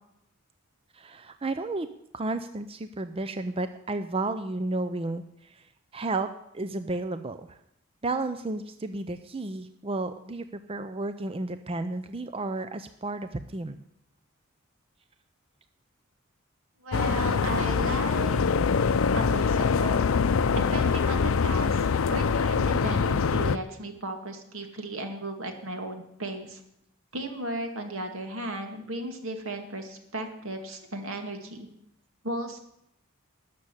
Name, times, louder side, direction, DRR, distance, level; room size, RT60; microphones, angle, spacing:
voice 1, 0.9-1.9 2.1-5.2 5.5-5.6 5.9-6.3 6.5-7.6 8.0-13.8, right 2 dB, 25° right, 10 dB, 0.5 m, -32 dB
voice 2, 16.8-18.4 19.2-20.0 20.5-26.6 27.1-31.7 32.2-32.6, right 1 dB, 80° right, 5 dB, 2.1 m, -35 dB
sound 1, 16.9-23.6, left 5 dB, 80° left, 0.5 m, -24 dB
13.0 x 6.9 x 9.8 m, 0.78 s
head